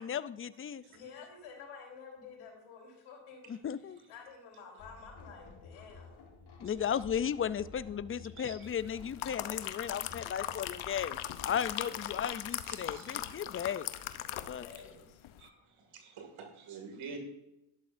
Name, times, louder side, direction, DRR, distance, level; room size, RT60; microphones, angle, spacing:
voice 1, 0.0-0.8 3.5-4.0 6.6-11.2 11.4-13.9 14.5-14.7, left 8 dB, 30° left, 16 dB, 0.4 m, -35 dB
voice 2, 0.9-6.3 11.7-12.2 14.3-15.2, left 5 dB, 90° left, 0 dB, 3.9 m, -51 dB
sound 1, 4.8-11.8, left 4 dB, 55° left, 2.5 m, -53 dB
sound 2, 8.9-14.9 15.2-15.4, left 12 dB, 70° left, 0.8 m, -39 dB
voice 3, 12.7-13.2 15.4-17.2, right 5 dB, 75° right, 4 dB, 2.4 m, -48 dB
12.5 x 11.0 x 2.6 m, 0.91 s
cardioid pair, 80°, 49 cm